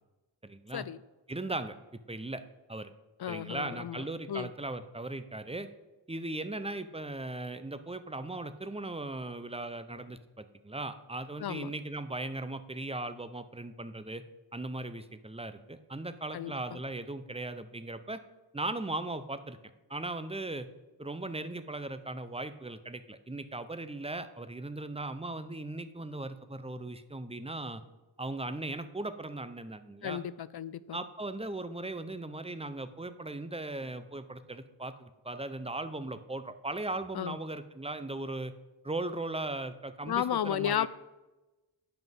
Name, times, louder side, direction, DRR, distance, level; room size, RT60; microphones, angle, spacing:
voice 1, 0.4-0.9 1.3-2.4 2.7-2.9 3.3-5.7 6.1-14.2 14.5-18.2 18.5-19.6 19.9-20.7 21.0-27.8 28.2-30.2 30.9-38.5 38.8-40.9, right 2 dB, 15° right, 11 dB, 0.6 m, -38 dB
voice 2, 3.2-4.5 11.4-11.7 16.3-16.8 30.0-31.0 37.1-37.4 40.0-40.9, left 10 dB, 60° left, 18 dB, 0.5 m, -34 dB
9.4 x 5.9 x 5.3 m, 1.1 s
wide cardioid pair, 40°, 46 cm